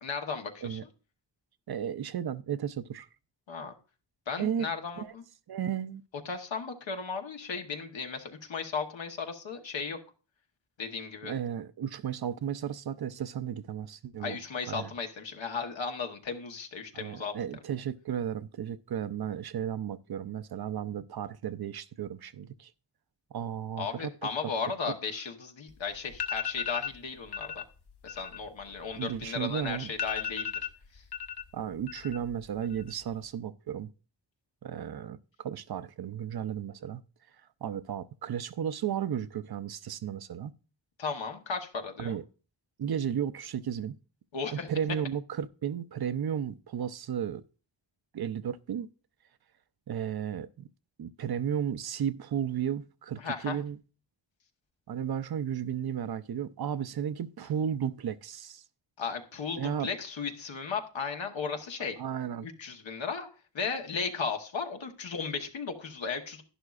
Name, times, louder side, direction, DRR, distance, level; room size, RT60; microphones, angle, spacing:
voice 1, 0.0-0.8 3.5-3.7 4.3-5.2 6.2-10.0 10.8-11.3 14.2-17.4 23.8-27.6 28.0-30.5 30.9-31.0 41.0-42.2 44.3-44.7 53.2-53.6 59.0-62.0 62.4-63.3 63.5-66.4, left 5 dB, 85° left, 1.2 m, -35 dB
voice 2, 1.7-3.1 4.4-4.7 5.0-5.1 5.5-6.0 11.2-14.4 14.7-14.9 16.9-22.7 23.3-24.5 24.9-25.0 28.9-29.9 31.5-33.9 34.6-37.0 37.6-40.5 42.0-42.2 42.8-44.0 44.7-47.4 48.1-48.9 49.9-50.7 51.0-53.8 54.9-58.6 59.6-59.9 62.0-62.5, right 9 dB, 55° right, 0.5 m, -34 dB
sound 1, 25.7-25.8 26.1-27.0 27.3-27.6 27.9-29.4 29.7-29.8 30.0-31.4 31.7-32.3 32.6-33.2, left 8 dB, 60° left, 0.9 m, -35 dB
11.0 x 10.5 x 2.4 m
wide cardioid pair, 80°, 44 cm